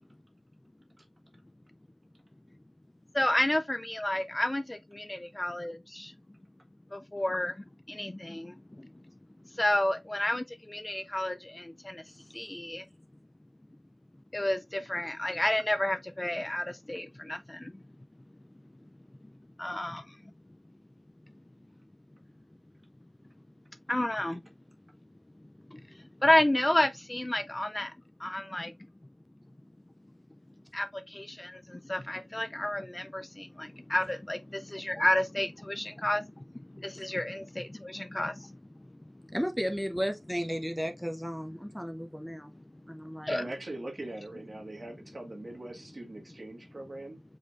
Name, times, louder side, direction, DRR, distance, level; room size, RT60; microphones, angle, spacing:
voice 1, 3.1-6.1 6.9-8.9 9.5-12.0 12.3-12.8 14.3-17.7 19.6-20.1 23.9-24.4 25.7-25.8 26.2-27.9 28.2-28.7 30.7-36.3 36.8-38.5 43.3-43.4, left 1 dB, 20° left, 0.3 m, -31 dB
voice 2, 39.3-42.5 42.9-43.5, equal, ahead, 0.7 m, -34 dB
voice 3, 43.3-47.2, right 1 dB, 40° right, 1.7 m, -41 dB
5.0 x 4.3 x 2.5 m
wide cardioid pair, 95°, 0 cm